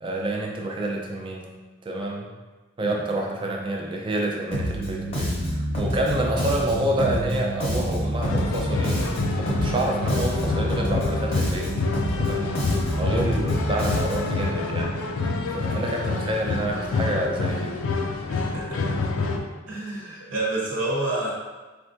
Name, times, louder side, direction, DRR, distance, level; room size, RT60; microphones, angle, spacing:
voice 1, 0.0-1.5 1.8-2.3 2.8-11.7 12.2-12.5 13.0-14.9 15.5-17.8, right 1 dB, 25° right, 0 dB, 0.4 m, -28 dB
Bass guitar, 4.5-14.4, equal, 30° left, 0.7 m, -28 dB
sound 1, 8.2-19.4, left 3 dB, 85° left, 0.4 m, -27 dB
voice 2, 15.7-16.1 18.3-19.0 19.7-21.3, right 2 dB, 85° right, -7 dB, 1.2 m, -30 dB
4.3 x 2.2 x 2.6 m, 1.2 s
head